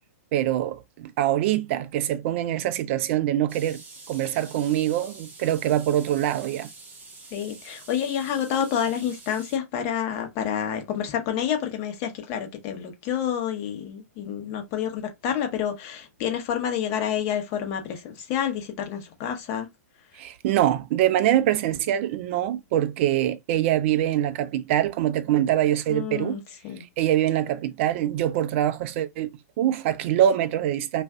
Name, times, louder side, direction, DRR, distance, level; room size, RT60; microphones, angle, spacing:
voice 1, 0.3-3.8 4.1-6.7 20.2-26.4 27.0-31.0, right 12 dB, 50° right, 0.5 m, -24 dB
sound 1, 3.5-9.6, right 3 dB, 20° right, 0.9 m, -46 dB
voice 2, 7.3-19.7 25.9-26.8, left 9 dB, 40° left, 0.9 m, -29 dB
2.5 x 2.3 x 3.4 m
hypercardioid pair, 115°, 8 cm